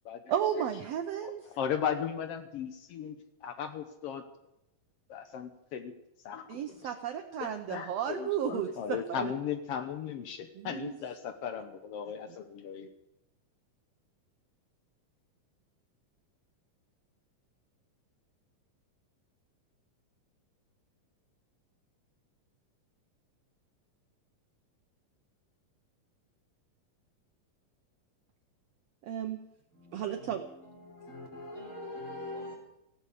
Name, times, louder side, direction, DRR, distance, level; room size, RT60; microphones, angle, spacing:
voice 1, 0.3-1.4 6.5-9.3 10.5-11.0 29.1-29.4 29.9-30.5, right 9 dB, 85° right, 1.4 m, -33 dB
voice 2, 1.2-4.2 5.1-5.9 6.2-6.6 7.4-12.9, left 8 dB, 90° left, 1.3 m, -36 dB
voice 3, 29.8-30.5 30.8-32.6, left 1 dB, 35° left, 5.3 m, -43 dB
18.0 x 16.0 x 5.1 m
omnidirectional pair, 4.1 m